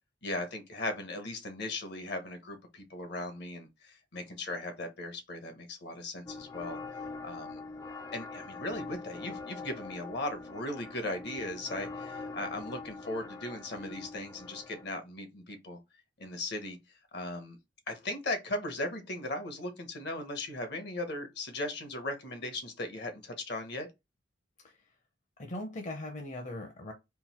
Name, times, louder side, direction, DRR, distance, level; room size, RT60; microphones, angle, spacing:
voice 1, 0.2-6.8 7.2-7.6 8.1-15.8 16.2-16.8 17.1-17.6 17.9-23.9, left 2 dB, 65° left, 1.0 m, -38 dB
sound 1, 6.3-14.9, left 3 dB, 15° left, 0.3 m, -43 dB
voice 2, 25.4-26.9, left 1 dB, 40° left, 0.7 m, -40 dB
3.8 x 2.5 x 4.2 m
head